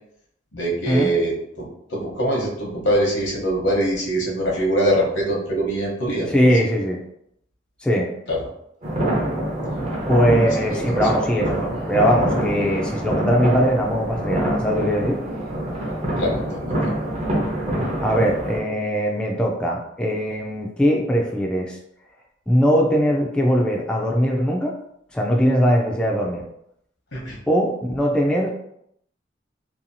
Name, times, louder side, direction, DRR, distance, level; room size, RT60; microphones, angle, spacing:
voice 1, 0.5-6.3 8.3-8.4 10.7-10.8 16.2-17.0 27.1-27.4, right 1 dB, 85° left, -3 dB, 0.9 m, -23 dB
voice 2, 6.3-7.0 7.8-8.1 10.1-15.2 18.0-21.8 22.5-24.7 25.1-26.4 27.5-28.5, equal, 5° left, -2 dB, 0.3 m, -20 dB
sound 1, 8.8-18.6, right 1 dB, 35° right, 0.6 m, -25 dB
2.8 x 2.3 x 2.6 m, 0.74 s
head